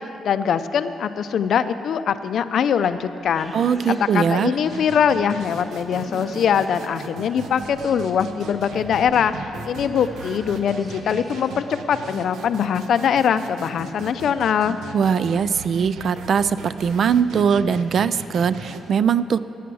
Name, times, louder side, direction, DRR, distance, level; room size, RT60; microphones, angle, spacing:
voice 1, 0.0-3.5 3.9-14.8, left 7 dB, 55° left, 11 dB, 0.5 m, -22 dB
sound 1, 2.6-11.7, right 1 dB, 20° right, 1.3 m, -43 dB
voice 2, 3.5-4.5 14.9-19.4, right 7 dB, 45° right, 15 dB, 0.3 m, -21 dB
sound 2, 4.7-18.8, right 3 dB, 80° right, 1.0 m, -38 dB
17.0 x 9.3 x 6.2 m, 2.9 s
cardioid pair, 160°, 0 cm